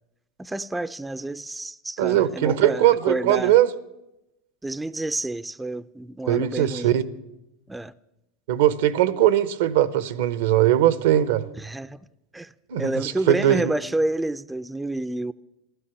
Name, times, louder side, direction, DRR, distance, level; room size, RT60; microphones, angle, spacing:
voice 1, 0.4-3.5 4.6-6.9 7.7-7.9 11.6-12.1 12.3-12.5 12.8-15.3, right 2 dB, 10° right, 0.5 m, -29 dB
voice 2, 2.0-3.7 6.3-7.0 8.5-11.4 12.7-13.7, right 12 dB, 75° right, 0.9 m, -20 dB
16.0 x 12.5 x 7.0 m
hypercardioid pair, 100°, 0 cm